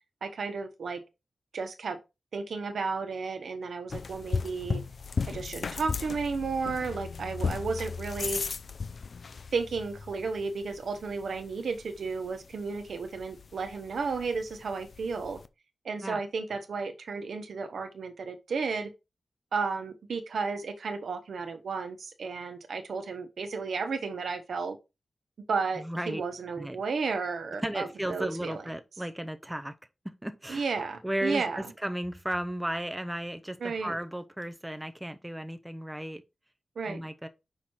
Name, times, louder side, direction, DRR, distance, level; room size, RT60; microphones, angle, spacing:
voice 1, 0.2-1.0 1.5-2.0 2.3-4.8 5.3-8.4 9.5-15.4 15.8-18.9 19.5-24.8 25.5-28.6 30.5-31.6 33.6-33.9 36.8-37.0, right 4 dB, 70° right, 1.1 m, -33 dB
sound 1, 3.9-15.5, left 5 dB, 50° left, 0.4 m, -37 dB
voice 2, 25.8-26.2 26.6-26.8 27.6-29.7 30.0-30.7 31.0-36.2 36.8-37.3, right 1 dB, 5° right, 0.6 m, -34 dB
5.7 x 4.8 x 4.4 m
wide cardioid pair, 145°, 0 cm